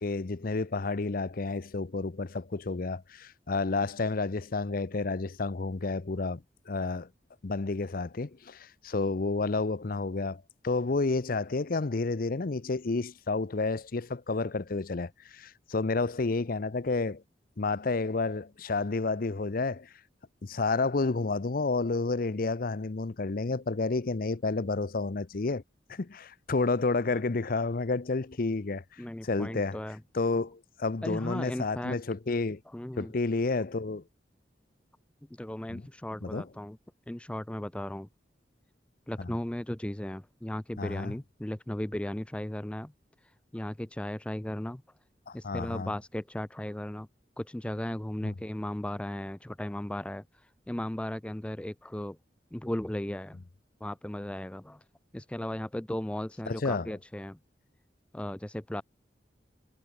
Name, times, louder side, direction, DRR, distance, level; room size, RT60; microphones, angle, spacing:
voice 1, 0.0-7.1 7.4-17.2 17.6-19.9 20.4-25.6 25.9-29.8 30.1-32.6 33.0-34.0 35.7-35.8 36.2-36.5 39.2-39.3 40.8-41.1 45.3-45.9 48.2-48.3 56.5-56.9, left 3 dB, 55° left, 0.7 m, -30 dB
voice 2, 29.0-30.0 31.0-32.0 32.7-33.1 35.3-36.8 37.1-38.1 39.1-42.9 43.5-44.8 45.3-47.1 47.4-50.2 50.7-52.2 52.5-53.4 53.8-54.8 55.1-57.4 58.1-58.8, left 1 dB, 5° left, 0.4 m, -36 dB
head